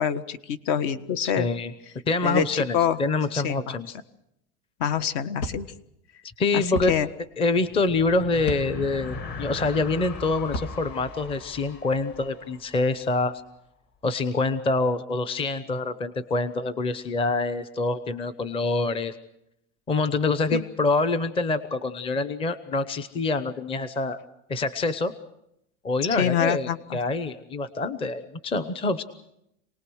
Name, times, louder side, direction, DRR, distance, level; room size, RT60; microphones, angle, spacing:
voice 1, 0.0-1.5 2.2-3.0 3.3-3.8 4.8-5.7 6.5-7.1 20.5-20.6 26.1-27.0, left 8 dB, 55° left, 12 dB, 1.6 m, -26 dB
voice 2, 1.2-1.7 2.1-4.0 6.4-6.9 7.4-13.4 14.0-19.2 19.9-24.2 24.5-25.1 25.8-29.0, left 3 dB, 15° left, 12 dB, 0.9 m, -26 dB
sound 1, 5.4-5.6 6.7-6.9 8.4-8.6 10.4-10.7, left 1 dB, 85° left, 2.9 m, -31 dB
sound 2, 7.5-13.2, left 3 dB, 35° left, 2.2 m, -39 dB
27.5 x 19.5 x 6.4 m, 0.79 s
cardioid pair, 160°, 31 cm